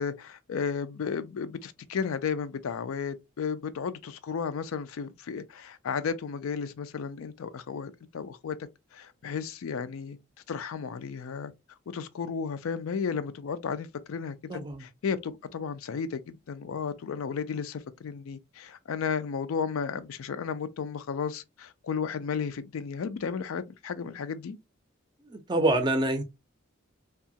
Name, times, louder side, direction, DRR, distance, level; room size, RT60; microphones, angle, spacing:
voice 1, 0.0-8.6 8.9-10.2 10.5-11.5 11.9-24.6, left 6 dB, 80° left, 0.4 m, -33 dB
voice 2, 14.5-14.8 25.3-26.2, right 2 dB, 20° right, 0.4 m, -26 dB
2.8 x 2.3 x 2.7 m
head